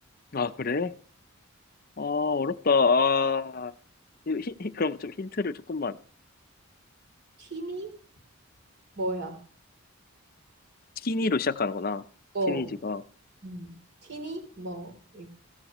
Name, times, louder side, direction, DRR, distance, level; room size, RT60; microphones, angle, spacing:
voice 1, 0.3-0.9 2.0-3.7 4.3-5.9 11.0-12.0 12.5-13.0, left 4 dB, 40° left, 12 dB, 0.6 m, -27 dB
voice 2, 7.4-7.9 9.0-9.4 12.3-12.7 13.4-13.8 14.0-15.3, right 1 dB, 50° right, 4 dB, 3.3 m, -34 dB
15.5 x 14.0 x 3.1 m, 0.41 s
head